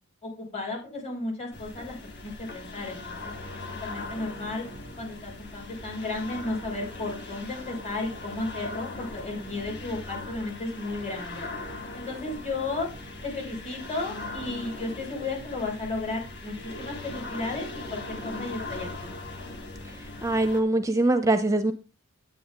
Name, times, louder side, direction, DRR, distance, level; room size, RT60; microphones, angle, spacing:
voice 1, 0.2-4.6 5.0-11.5 11.9-12.9 13.2-19.1, left 2 dB, 30° left, -1 dB, 6.1 m, -34 dB
sound 1, 1.5-20.6, left 2 dB, 55° left, 2.6 m, -40 dB
voice 2, 20.2-21.7, right 2 dB, 15° right, 9 dB, 0.7 m, -23 dB
10.0 x 9.2 x 3.8 m, 0.29 s
head